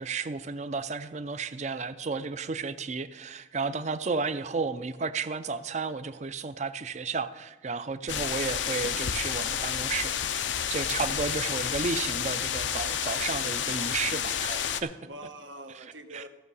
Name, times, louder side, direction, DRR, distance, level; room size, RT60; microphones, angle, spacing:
voice 1, 0.0-10.1 10.4-14.9 16.1-16.2, right 4 dB, 40° right, 12 dB, 0.5 m, -33 dB
sound 1, 8.1-14.8, left 8 dB, 90° left, 0.6 m, -30 dB
voice 2, 15.0-16.3, right 1 dB, 85° right, 5 dB, 1.3 m, -45 dB
16.0 x 6.2 x 5.5 m, 1.2 s
head